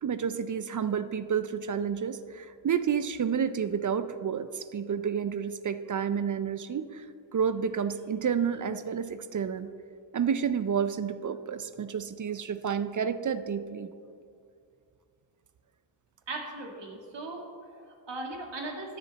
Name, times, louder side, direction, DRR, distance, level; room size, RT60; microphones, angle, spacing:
voice 1, 0.0-7.1 7.3-9.7 10.1-13.9, right 7 dB, 40° right, 12 dB, 0.5 m, -30 dB
voice 2, 16.3-19.0, right 2 dB, 60° right, 1 dB, 2.0 m, -39 dB
13.5 x 7.2 x 4.1 m, 2.3 s
cardioid pair, 65°, 49 cm